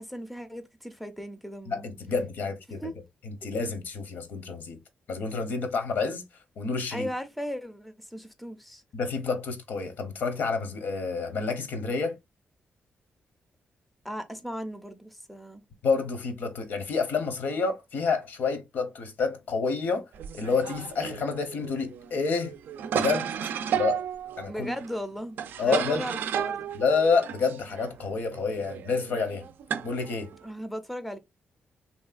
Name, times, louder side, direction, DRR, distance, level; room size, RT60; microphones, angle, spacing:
voice 1, 0.0-1.9 2.7-2.9 6.9-8.8 14.0-15.6 24.5-26.7 30.4-31.2, equal, ahead, 0.4 m, -37 dB
voice 2, 1.7-2.8 3.2-4.8 5.1-6.2 6.6-7.1 8.9-12.2 15.8-20.1 20.3-22.5 22.9-23.3 23.7-24.0 24.4-24.7 25.6-26.0 26.7-29.4 29.8-30.3, left 4 dB, 70° left, 0.8 m, -28 dB
sound 1, 20.1-30.5, right 8 dB, 80° right, 0.3 m, -33 dB
3.1 x 2.7 x 2.4 m
wide cardioid pair, 140°, 3 cm